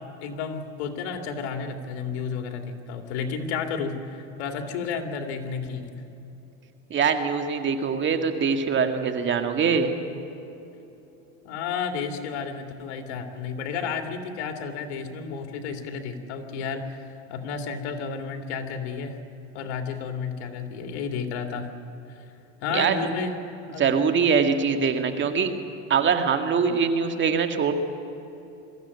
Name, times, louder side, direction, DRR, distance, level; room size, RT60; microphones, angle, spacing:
voice 1, 0.2-5.9 11.4-19.2 19.5-21.7 22.1-22.2 22.6-23.3 23.7-23.9, left 5 dB, 80° left, 5 dB, 2.6 m, -32 dB
voice 2, 6.9-9.9 22.7-22.9 23.8-25.5 25.9-27.7, right 6 dB, 35° right, 6 dB, 2.1 m, -23 dB
22.5 x 15.0 x 9.6 m, 3.0 s
supercardioid pair, 115°, 34 cm